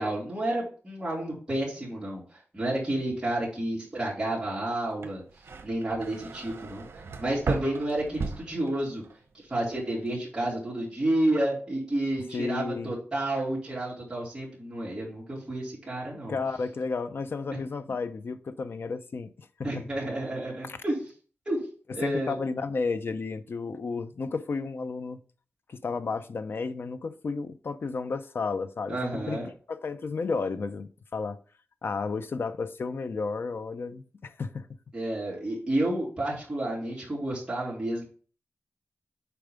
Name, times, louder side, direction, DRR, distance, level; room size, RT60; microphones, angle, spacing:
voice 1, 0.0-2.2 2.5-5.2 5.6-9.0 9.5-16.4 17.5-17.6 19.6-21.0 21.5-21.6 21.9-22.4 28.9-29.5 34.9-38.1, right 1 dB, 20° right, 3.0 m, -30 dB
sound 1, 4.9-9.2 9.5-10.1, right 4 dB, 70° right, 1.0 m, -36 dB
voice 2, 12.3-12.9 16.3-19.8 20.6-20.8 21.9-25.2 25.7-31.4 31.8-34.7, left 4 dB, 60° left, 0.6 m, -32 dB
6.9 x 4.6 x 5.1 m
wide cardioid pair, 140°, 4 cm